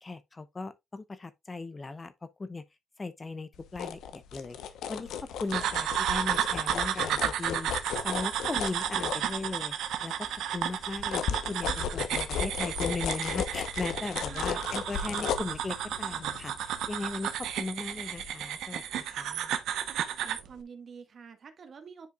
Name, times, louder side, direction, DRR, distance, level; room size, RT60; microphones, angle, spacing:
voice 1, 0.0-2.1 2.4-2.6 3.0-7.7 8.0-9.7 10.0-10.3 10.5-19.6, left 3 dB, 25° left, 0.8 m, -38 dB
sound 1, 3.5-9.8 10.2-17.8 18.2-18.3, left 8 dB, 80° left, 0.9 m, -35 dB
sound 2, 5.5-20.5, right 10 dB, 80° right, 0.9 m, -32 dB
voice 2, 14.0-14.5 20.2-22.1, right 6 dB, 50° right, 1.5 m, -48 dB
9.4 x 4.9 x 2.3 m
cardioid pair, 90°, 0 cm